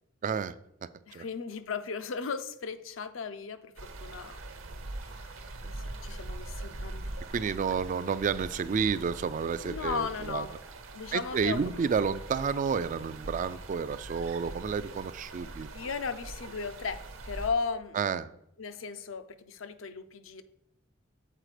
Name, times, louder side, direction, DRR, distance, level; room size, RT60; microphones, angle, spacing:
voice 1, 0.2-0.5 1.1-1.2 7.3-10.4 11.1-15.7 18.0-18.3, right 6 dB, 40° right, 14 dB, 0.3 m, -30 dB
voice 2, 1.1-4.4 4.7-5.4 5.6-7.1 7.7-7.8 9.6-10.5 10.9-11.8 15.7-18.0 18.6-20.4, left 5 dB, 70° left, 11 dB, 0.6 m, -36 dB
sound 1, 3.8-17.5, right 2 dB, 80° right, 1.1 m, -42 dB
7.7 x 4.1 x 4.9 m, 0.75 s
head